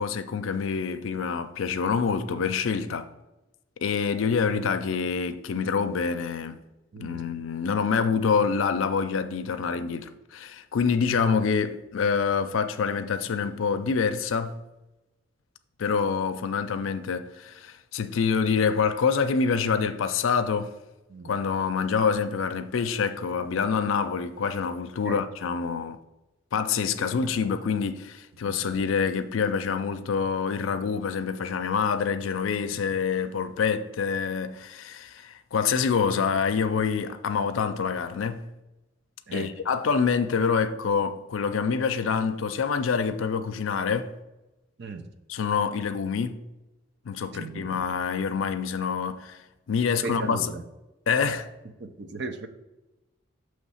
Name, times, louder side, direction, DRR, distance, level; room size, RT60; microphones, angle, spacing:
voice 1, 0.0-3.1 3.8-6.6 7.0-14.6 15.8-20.7 21.2-26.0 26.5-38.4 39.3-44.1 45.3-46.4 47.1-49.4 49.7-50.5 51.1-51.5, left 6 dB, 80° left, 0.4 m, -26 dB
voice 2, 6.9-7.3 21.1-21.3 25.0-25.2 27.0-27.3 28.4-28.5 39.3-39.5 44.8-45.1 47.3-47.7 50.0-50.6 51.8-52.5, right 3 dB, 60° right, 0.6 m, -37 dB
6.3 x 3.2 x 5.6 m
head